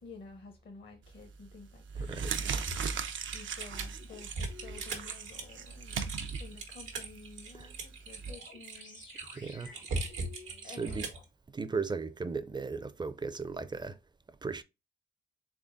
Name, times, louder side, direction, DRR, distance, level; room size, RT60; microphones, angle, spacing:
voice 1, 0.0-9.5 10.6-11.0, left 4 dB, 55° left, 0.8 m, -52 dB
sound 1, 1.1-1.4 1.8-8.3, right 6 dB, 75° right, 0.5 m, -38 dB
voice 2, 2.1-2.5 7.6-7.7 9.3-9.8 10.6-11.1 11.5-14.0 14.4-14.6, right 4 dB, 20° right, 0.4 m, -36 dB
Typing, 2.3-11.2, right 3 dB, 90° right, 0.9 m, -40 dB
sound 2, 3.7-5.1 5.9-6.0 8.3-11.2, left 4 dB, 70° left, 1.3 m, -54 dB
3.6 x 3.5 x 2.5 m
supercardioid pair, 50°, 20 cm